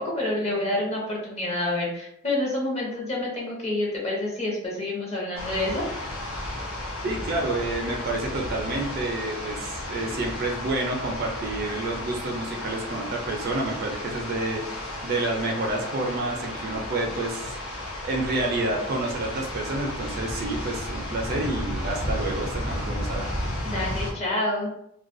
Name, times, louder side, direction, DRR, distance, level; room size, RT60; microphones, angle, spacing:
voice 1, 0.0-5.8 23.6-24.7, left 1 dB, 30° left, -4 dB, 0.7 m, -28 dB
sound 1, 5.4-24.1, left 1 dB, 75° left, 0.6 m, -33 dB
voice 2, 7.0-14.6 15.0-17.6 18.0-23.3, right 2 dB, 50° right, 1 dB, 0.4 m, -29 dB
2.3 x 2.2 x 2.5 m, 0.77 s
head